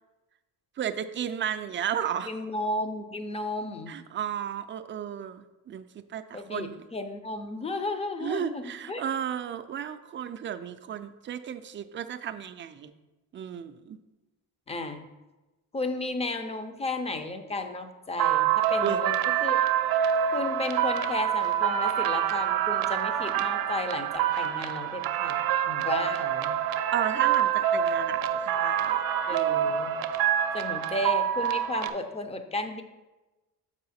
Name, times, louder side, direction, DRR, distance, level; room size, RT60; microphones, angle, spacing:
voice 1, 0.8-2.3 3.9-6.8 8.2-12.9 13.3-14.0 18.8-19.0 26.9-29.0 29.3-29.7, right 9 dB, 35° right, 10 dB, 0.4 m, -33 dB
voice 2, 2.3-3.9 6.3-9.0 14.7-15.0 15.7-19.1 19.4-19.6 20.3-25.4 25.7-26.6 29.3-30.0 30.5-32.8, left 2 dB, 15° left, 7 dB, 0.6 m, -33 dB
sound 1, 18.2-31.9, right 10 dB, 80° right, 0.6 m, -26 dB
6.5 x 4.8 x 4.2 m, 1.1 s
cardioid pair, 115°, 36 cm